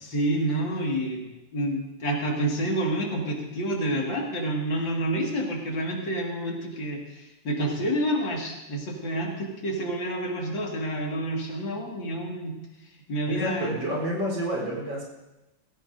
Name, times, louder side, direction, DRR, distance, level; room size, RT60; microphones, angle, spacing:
voice 1, 0.0-1.2 1.5-12.6 13.1-13.8, right 1 dB, 70° left, -1 dB, 2.7 m, -28 dB
voice 2, 13.3-15.0, right 1 dB, 75° right, -3 dB, 4.6 m, -29 dB
17.0 x 16.0 x 2.6 m, 1.0 s
omnidirectional pair, 2.2 m